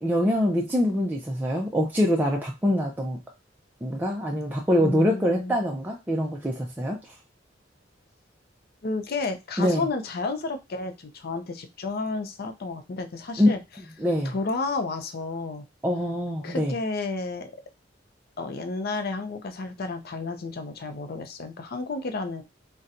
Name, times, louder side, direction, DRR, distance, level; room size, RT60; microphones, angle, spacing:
voice 1, 0.0-3.2 3.8-7.0 9.6-9.9 13.4-13.5 14.0-14.3 15.8-16.7, equal, 10° right, -1 dB, 0.4 m, -24 dB
voice 2, 4.8-5.6 8.8-13.6 14.2-15.7 16.4-17.5 18.4-22.4, left 3 dB, 55° left, 7 dB, 0.5 m, -31 dB
4.1 x 2.2 x 2.5 m, 0.25 s
head